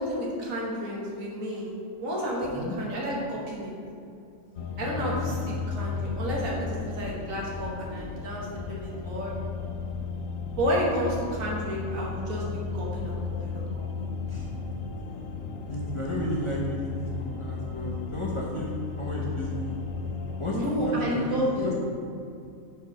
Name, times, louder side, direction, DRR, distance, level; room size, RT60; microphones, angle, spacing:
voice 1, 0.0-1.7 2.0-3.7 4.8-9.3 10.6-14.1 20.5-21.7, equal, 85° right, -4 dB, 1.7 m, -31 dB
voice 2, 2.4-2.8 4.8-5.5 14.3-14.5 15.6-18.7 19.0-19.8 20.4-20.6 20.8-21.8, equal, 30° left, -5 dB, 0.7 m, -33 dB
sound 1, 4.6-21.0, left 5 dB, 80° left, 1.0 m, -34 dB
4.7 x 4.6 x 5.7 m, 2.5 s
omnidirectional pair, 1.4 m